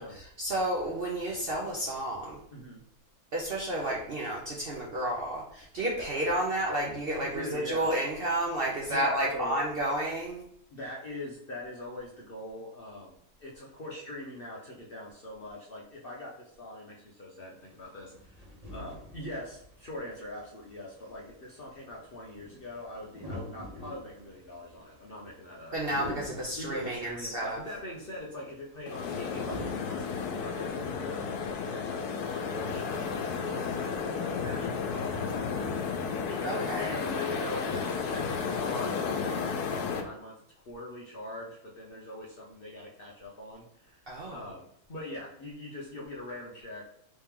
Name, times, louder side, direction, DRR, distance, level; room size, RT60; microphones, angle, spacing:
voice 1, 0.0-2.4 3.3-10.4 25.7-27.6 36.4-37.0 44.1-44.4, right 1 dB, 55° right, -3 dB, 0.7 m, -31 dB
voice 2, 2.5-2.8 5.9-6.1 7.2-7.9 8.9-9.6 10.7-25.7 26.6-40.4 40.6-46.8, left 1 dB, 50° left, -3 dB, 0.7 m, -42 dB
sound 1, 17.6-29.7, left 1 dB, 30° right, 1.1 m, -46 dB
sound 2, 28.9-40.0, left 5 dB, 90° left, 1.1 m, -33 dB
3.2 x 3.0 x 3.5 m, 0.71 s
omnidirectional pair, 1.6 m